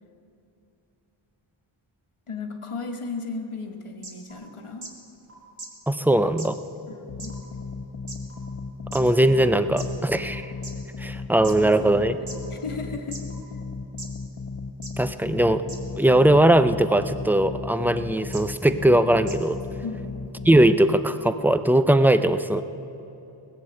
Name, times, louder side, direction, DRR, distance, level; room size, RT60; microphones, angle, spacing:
voice 1, 2.3-4.9 6.9-7.3 11.6-13.2 19.8-20.2, left 4 dB, 90° left, 3 dB, 1.3 m, -35 dB
sound 1, 4.0-4.1 4.8-4.9 5.6-5.7 6.4-6.5 7.2-7.3 8.1-8.2 8.9-9.0 9.8-9.9 10.6-10.7 11.4-11.5 12.3-12.4 13.1-13.2 14.0-14.1 14.8-14.9 15.7-15.8 17.0-17.2 18.3-18.4 19.3-19.4, right 3 dB, 65° right, 1.8 m, -38 dB
sound 2, 4.3-4.4 5.3-5.4 6.3-6.4 7.3-7.4 8.3-8.4 9.3-9.4 10.3-10.4 11.3-11.4 12.3-12.4 13.3-13.4, equal, 30° right, 4.4 m, -51 dB
voice 2, 5.9-6.6 8.9-10.5 11.0-12.2 15.0-15.6 16.0-19.6 20.4-22.6, right 1 dB, 5° right, 11 dB, 0.5 m, -20 dB
sound 3, 7.1-20.7, left 4 dB, 45° left, 1.1 m, -36 dB
18.5 x 8.1 x 7.6 m, 3.0 s
wide cardioid pair, 60°, 49 cm